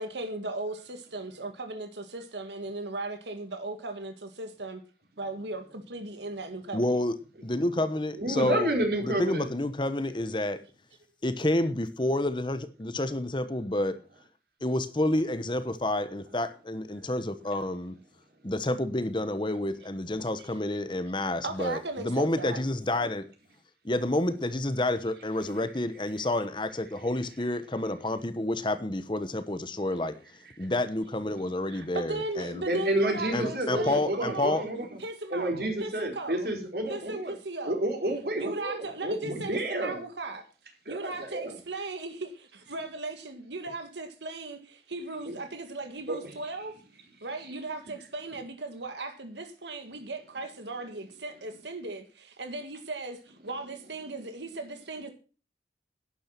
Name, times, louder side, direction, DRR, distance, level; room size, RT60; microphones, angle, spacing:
voice 1, 0.0-4.8 5.2-7.0 20.4-20.5 21.4-22.6 31.7-34.7 35.0-36.5 36.9-37.9 38.4-40.4 40.9-46.8 47.2-55.1, right 2 dB, 85° right, 1.8 m, -37 dB
voice 2, 6.7-7.1 7.4-8.7 9.0-10.6 11.2-14.0 14.6-17.9 18.4-23.3 23.8-30.1 30.6-32.6 33.3-34.6, left 1 dB, 25° left, 1.0 m, -29 dB
voice 3, 8.2-9.5 32.7-34.9 35.3-37.3 37.6-40.0 40.9-41.6 45.2-45.3 46.1-46.2, right 1 dB, 60° right, 4.5 m, -30 dB
12.0 x 10.5 x 5.8 m
head